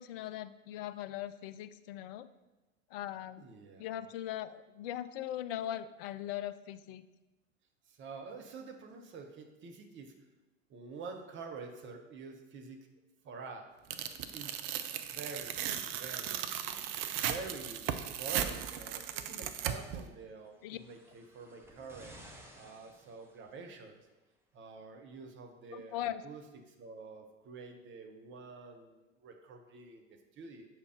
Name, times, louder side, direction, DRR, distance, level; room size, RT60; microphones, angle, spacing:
voice 1, 0.0-2.3 2.9-3.5 3.8-7.1 20.6-20.8 25.7-26.2, left 12 dB, 45° left, 14 dB, 0.5 m, -40 dB
voice 2, 3.4-3.9 7.9-10.1 10.7-12.9 13.2-13.7 14.3-14.6 15.0-15.6 15.9-16.3 17.1-22.2 22.5-24.0 24.5-26.4 26.7-30.7, right 4 dB, 30° right, 4 dB, 1.0 m, -47 dB
Tearing, 13.9-20.0, right 10 dB, 45° right, 0.6 m, -37 dB
sound 1, 20.5-23.8 24.8-24.9, equal, 5° right, 1.0 m, -56 dB
6.9 x 4.4 x 5.0 m, 1.1 s
figure-of-eight pair, 80°, 40 cm